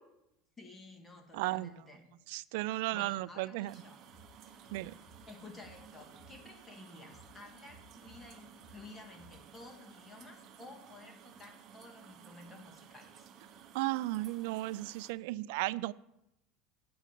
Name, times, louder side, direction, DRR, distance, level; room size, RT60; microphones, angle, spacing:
voice 1, 0.6-2.1 2.7-4.1 5.3-13.3, left 2 dB, 20° left, 3 dB, 2.1 m, -53 dB
voice 2, 1.3-1.7 2.3-3.7 4.7-4.9 13.7-15.9, right 18 dB, 75° right, 19 dB, 0.3 m, -34 dB
sound 1, 3.7-15.1, right 8 dB, 50° right, 0.9 m, -56 dB
sound 2, 4.1-6.4 6.7-9.4 9.7-10.1, equal, 40° left, 3.0 m, -60 dB
9.4 x 4.9 x 7.4 m, 0.84 s
supercardioid pair, 100°, 0 cm